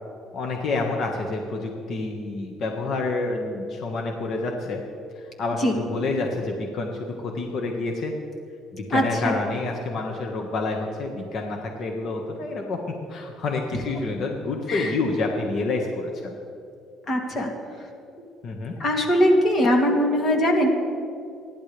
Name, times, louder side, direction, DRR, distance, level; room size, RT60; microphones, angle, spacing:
voice 1, 0.3-4.8 5.2-8.1 8.7-12.8 13.1-16.4 18.4-18.7, left 3 dB, 55° left, 1 dB, 1.6 m, -28 dB
voice 2, 8.9-9.3 14.7-14.9 17.1-17.5 18.8-20.7, equal, 40° left, 1 dB, 2.9 m, -21 dB
28.0 x 11.0 x 3.5 m, 2.5 s
cardioid pair, 90°, 0 cm